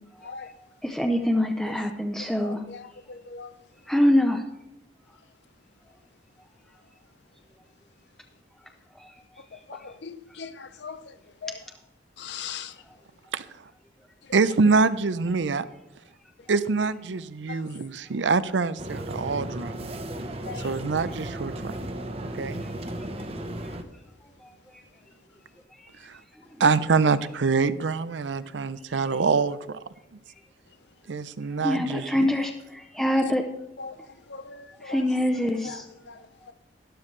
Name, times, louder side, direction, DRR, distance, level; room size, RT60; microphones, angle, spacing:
voice 1, 0.2-0.5 1.7-1.8 2.4-3.5 9.4-11.2 11.4-11.6 12.2-12.8 14.2-14.3 16.4-16.5 17.5-17.6 20.4-20.7 33.2-33.3 33.8-35.1 35.6-36.5, left 5 dB, 75° left, 0.7 m, -40 dB
voice 2, 0.8-2.6 3.9-4.4 9.0-9.1 31.6-33.4 34.8-35.8, left 1 dB, 5° left, 0.6 m, -24 dB
voice 3, 14.3-15.6 16.5-19.9 20.6-21.7 22.4-22.6 26.0-26.2 26.6-29.8 31.1-32.3, right 4 dB, 85° right, 0.6 m, -25 dB
sound 1, 18.8-23.8, right 1 dB, 35° right, 0.9 m, -35 dB
12.5 x 12.0 x 3.2 m
head